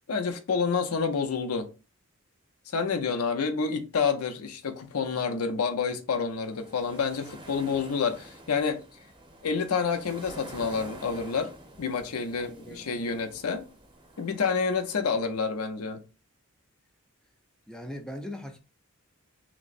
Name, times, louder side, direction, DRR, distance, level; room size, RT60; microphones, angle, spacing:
voice 1, 0.1-1.7 2.7-8.8 9.4-11.5 11.8-13.6 14.2-16.0, left 5 dB, 75° left, 0.7 m, -28 dB
sound 1, 6.2-15.5, right 1 dB, 20° right, 0.7 m, -48 dB
voice 2, 12.4-12.8 17.7-18.6, left 1 dB, 5° left, 0.4 m, -40 dB
6.0 x 2.1 x 2.5 m
head